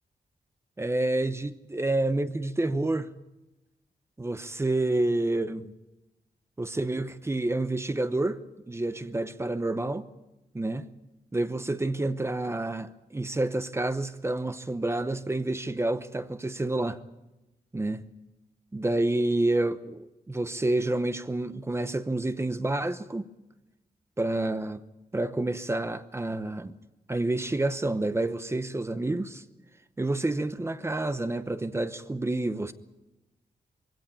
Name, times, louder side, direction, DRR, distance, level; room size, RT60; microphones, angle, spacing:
voice 1, 0.8-3.1 4.2-5.7 6.6-10.1 10.5-10.9 11.3-17.0 17.7-18.0 18.7-23.3 24.2-24.8 25.1-26.8 27.1-29.4 30.0-32.7, right 2 dB, 15° right, 0.8 m, -29 dB
22.5 x 17.0 x 8.7 m
wide cardioid pair, 170°, 16 cm